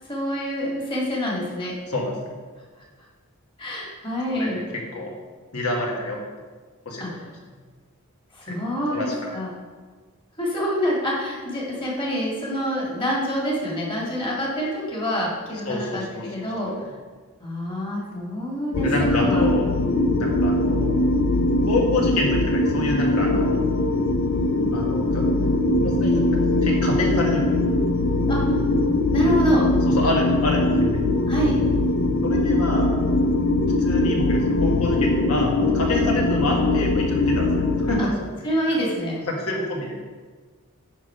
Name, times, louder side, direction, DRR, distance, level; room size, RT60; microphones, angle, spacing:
voice 1, 0.1-1.7 3.6-4.6 7.0-7.1 8.3-9.5 10.4-16.7 17.4-18.9 19.2-19.4 28.3-28.6 29.1-29.7 31.3-31.5 38.0-38.1 38.4-39.2, equal, 25° left, -4 dB, 1.9 m, -26 dB
voice 2, 1.9-2.3 4.3-4.6 4.9-5.1 5.5-6.2 6.8-7.3 8.5-8.6 8.9-9.3 15.6-16.8 18.8-19.7 20.2-20.9 21.6-23.6 24.7-26.3 26.6-27.6 29.9-31.3 32.2-32.9 33.8-38.3 39.3-40.0, left 1 dB, 75° left, -1 dB, 1.7 m, -28 dB
sound 1, 18.7-38.0, left 2 dB, 55° left, 0.5 m, -21 dB
9.3 x 3.7 x 5.6 m, 1.4 s
head